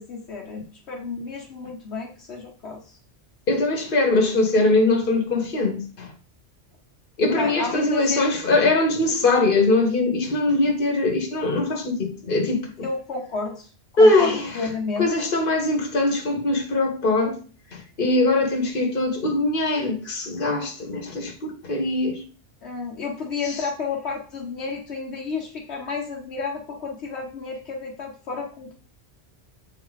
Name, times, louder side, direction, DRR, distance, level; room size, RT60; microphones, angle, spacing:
voice 1, 0.0-3.0 7.3-8.3 12.8-15.1 22.6-28.7, left 4 dB, 70° left, 1.3 m, -31 dB
voice 2, 3.5-6.1 7.2-12.7 14.0-14.5 15.0-17.4 18.0-22.2, left 2 dB, 50° left, 1.5 m, -21 dB
7.5 x 4.2 x 4.0 m
omnidirectional pair, 1.2 m